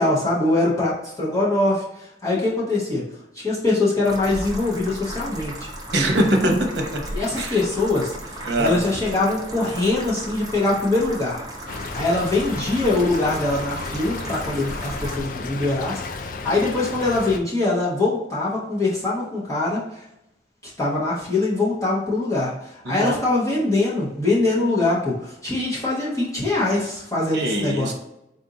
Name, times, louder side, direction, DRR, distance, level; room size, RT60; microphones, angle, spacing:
voice 1, 0.0-1.8 2.2-3.0 3.4-5.5 7.1-8.1 8.6-11.4 12.0-19.8 20.6-22.5 22.9-27.9, left 2 dB, 20° left, -6 dB, 1.0 m, -23 dB
sound 1, 4.0-15.2, right 1 dB, 20° right, 0.6 m, -35 dB
voice 2, 5.9-7.0 7.3-7.6 8.4-8.7 22.8-23.2 27.3-27.9, right 1 dB, 65° right, 3 dB, 0.8 m, -22 dB
Stream / Trickle dribble, 11.7-17.4, left 3 dB, 45° left, 0.3 m, -33 dB
4.1 x 2.6 x 3.9 m, 0.83 s
head